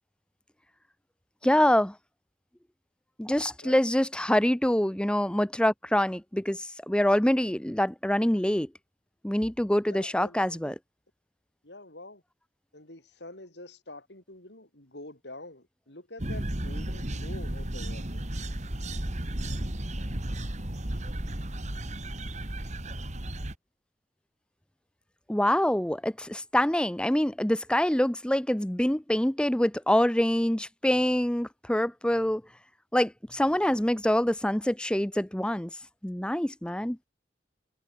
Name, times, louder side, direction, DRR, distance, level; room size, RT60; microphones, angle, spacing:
voice 1, 1.4-1.9 3.2-8.7 9.2-10.7 25.3-32.4 32.9-35.7 36.0-37.1, left 1 dB, 5° left, 0.7 m, -25 dB
voice 2, 9.9-10.7 11.6-12.2 12.7-18.3, left 2 dB, 70° left, 6.4 m, -46 dB
sound 1, 16.2-23.6, right 1 dB, 40° right, 2.6 m, -34 dB
head